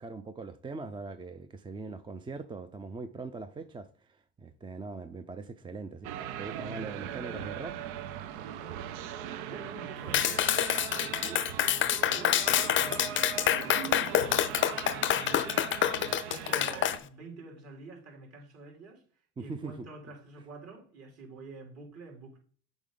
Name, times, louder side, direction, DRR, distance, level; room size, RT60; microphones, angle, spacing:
voice 1, 0.0-6.1 6.4-7.8 19.4-19.9, right 3 dB, 15° right, 0.4 m, -41 dB
sound 1, 6.0-17.0, right 9 dB, 80° right, 0.7 m, -39 dB
voice 2, 9.4-15.7 16.0-19.0 19.4-22.4, right 3 dB, 45° right, 3.1 m, -48 dB
Clapping, 10.1-17.0, left 11 dB, 35° left, 0.5 m, -27 dB
7.1 x 5.0 x 3.8 m
supercardioid pair, 85°, 34 cm